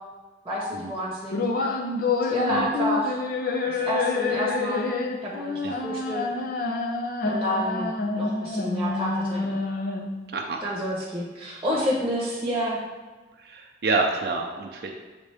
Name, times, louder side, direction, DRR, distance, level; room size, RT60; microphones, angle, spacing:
voice 1, 0.4-1.3 2.2-3.2 3.7-4.8 5.2-6.3 7.2-9.6 10.6-12.8, equal, 15° right, -5 dB, 1.0 m, -29 dB
sound 1, 1.3-10.3, left 3 dB, 50° left, 0.6 m, -27 dB
voice 2, 13.4-15.0, right 3 dB, 60° right, 1 dB, 0.5 m, -27 dB
8.1 x 3.6 x 3.4 m, 1.3 s
head